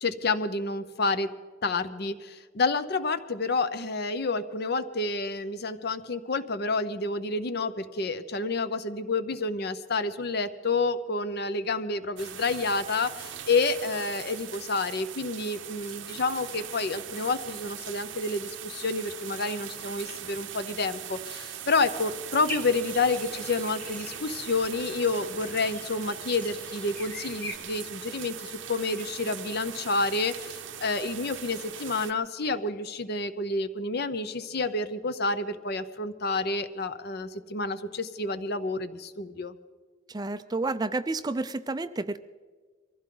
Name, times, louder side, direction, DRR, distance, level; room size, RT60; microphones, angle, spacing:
voice 1, 0.0-1.3 1.6-39.6, left 3 dB, 55° left, 12 dB, 0.8 m, -29 dB
sound 1, 12.2-32.1, right 10 dB, 70° right, 0.8 m, -40 dB
sound 2, 22.5-27.6, left 1 dB, 10° left, 1.2 m, -43 dB
voice 2, 40.1-42.2, right 3 dB, 20° right, 12 dB, 0.4 m, -30 dB
23.5 x 15.5 x 3.9 m, 1.4 s
head